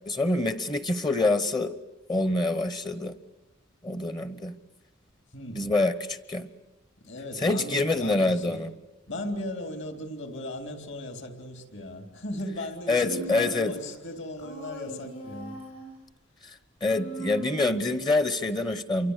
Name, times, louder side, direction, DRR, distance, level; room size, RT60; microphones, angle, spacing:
voice 1, 0.1-1.7 2.1-3.1 3.8-4.5 5.5-6.5 7.4-8.7 12.9-13.7 16.8-19.1, left 2 dB, 20° left, 14 dB, 1.0 m, -26 dB
voice 2, 5.3-5.7 7.0-8.6 9.1-15.6, left 1 dB, 60° left, 7 dB, 3.5 m, -37 dB
Human voice, 12.9-13.9 14.4-16.0 16.8-18.1, right 2 dB, 75° left, 6.1 m, -40 dB
28.5 x 24.5 x 8.2 m, 0.99 s
head